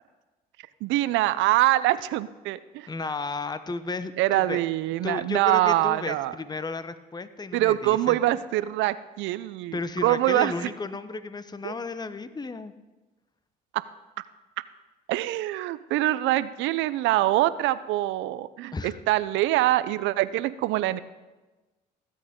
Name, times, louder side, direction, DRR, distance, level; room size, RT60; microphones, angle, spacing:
voice 1, 0.8-2.9 4.2-6.4 7.5-10.5 11.6-11.8 13.7-13.8 15.1-21.0, right 15 dB, 70° right, 16 dB, 0.6 m, -24 dB
voice 2, 2.9-4.6 5.0-8.2 9.7-12.7 18.7-19.0, left 3 dB, 20° left, 13 dB, 0.8 m, -33 dB
18.5 x 8.4 x 3.7 m, 1.1 s
hypercardioid pair, 60°, 20 cm